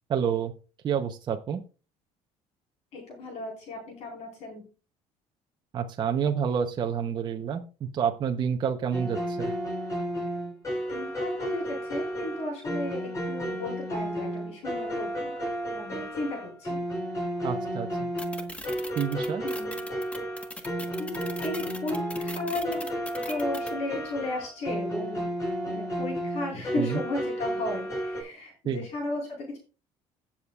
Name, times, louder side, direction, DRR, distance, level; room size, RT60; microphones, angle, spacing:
voice 1, 0.1-0.5 0.8-1.6 5.7-9.5 17.4-17.9 19.0-19.4 26.8-27.0 28.6-28.8, right 7 dB, 35° right, 4 dB, 0.8 m, -28 dB
voice 2, 2.9-4.6 10.9-15.3 15.7-16.8 19.4-19.8 21.0-22.9 23.3-25.3 25.7-29.6, left 2 dB, 60° left, -1 dB, 4.5 m, -35 dB
sound 1, 8.9-28.2, equal, 25° left, 6.0 m, -32 dB
sound 2, 18.2-23.7, left 1 dB, 10° left, 1.3 m, -40 dB
18.0 x 7.2 x 2.4 m, 0.33 s
cardioid pair, 135°, 12 cm